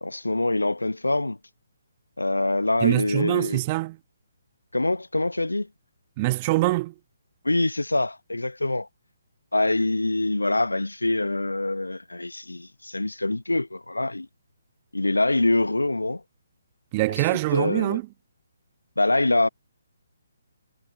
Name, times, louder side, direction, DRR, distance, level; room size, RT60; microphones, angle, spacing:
voice 1, 0.0-1.4 2.2-3.6 4.7-5.7 7.4-8.9 9.5-14.3 14.9-16.2 17.2-17.3 17.5-18.0 19.0-19.5, left 2 dB, 80° left, 1.1 m, -24 dB
voice 2, 2.8-4.0 6.2-6.9 16.9-18.1, right 21 dB, 25° right, 1.4 m, -24 dB
figure-of-eight pair, 140°, 0 cm